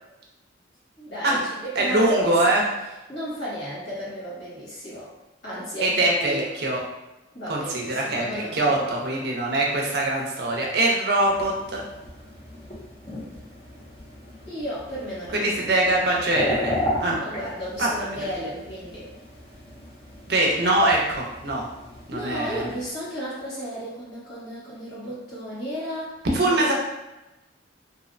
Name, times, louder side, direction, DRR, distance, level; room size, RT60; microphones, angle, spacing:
voice 1, 1.0-2.6 3.1-5.1 5.4-6.5 7.3-9.1 14.5-15.9 17.2-19.1 22.1-26.7, equal, 70° left, -9 dB, 1.2 m, -34 dB
voice 2, 1.8-2.7 5.8-6.8 7.5-11.8 15.3-17.2 17.8-17.9 18.2-18.3 20.3-21.7 22.1-22.6 26.2-26.7, right 2 dB, 55° right, -2 dB, 0.5 m, -23 dB
sound 1, 11.2-22.9, left 1 dB, 30° left, 0.5 m, -35 dB
2.6 x 2.0 x 2.5 m, 1.0 s
head